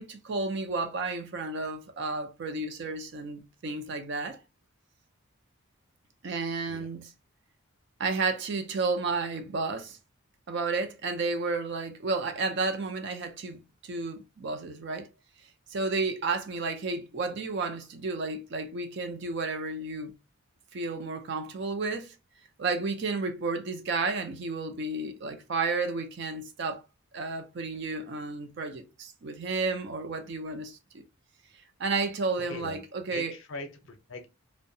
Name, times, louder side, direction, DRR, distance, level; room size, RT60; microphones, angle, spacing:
voice 1, 0.0-4.4 6.2-7.0 8.0-10.0 10.5-15.1 15.7-20.1 20.7-22.1 22.6-26.8 27.1-31.0 31.8-33.3, right 3 dB, 55° right, 0.4 m, -32 dB
voice 2, 32.4-32.8 33.1-34.3, left 2 dB, 60° left, 0.6 m, -41 dB
2.6 x 2.1 x 2.6 m
head